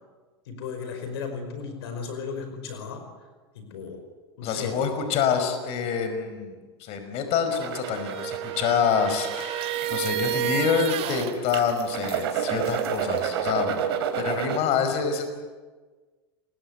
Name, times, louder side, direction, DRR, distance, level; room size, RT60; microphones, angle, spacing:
voice 1, 0.4-3.1 3.5-4.0 4.4-4.8, left 5 dB, 75° left, 7 dB, 5.1 m, -35 dB
voice 2, 4.4-13.9 14.2-15.3, left 7 dB, 50° left, 7 dB, 5.2 m, -27 dB
sound 1, 7.5-14.6, right 8 dB, 75° right, 3.5 m, -31 dB
sound 2, 7.7-11.4, right 11 dB, 50° right, 2.9 m, -30 dB
28.5 x 22.0 x 8.3 m, 1.4 s
hypercardioid pair, 95°, 13 cm